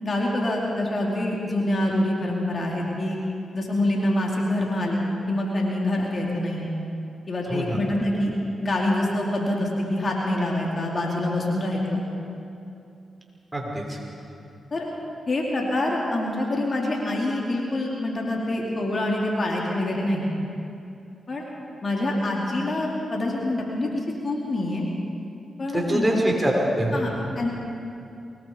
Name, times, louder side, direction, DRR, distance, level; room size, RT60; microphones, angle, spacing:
voice 1, 0.0-3.2 3.5-5.0 5.3-6.7 7.3-8.3 8.6-12.0 14.7-14.9 15.3-20.3 21.3-21.5 21.8-24.8 25.6-26.0 26.9-27.5, left 1 dB, 45° left, -2 dB, 4.5 m, -26 dB
voice 2, 13.5-14.0 25.7-27.1, right 1 dB, 20° right, -1 dB, 6.2 m, -24 dB
24.0 x 21.5 x 5.3 m, 2.7 s
supercardioid pair, 40°, 0 cm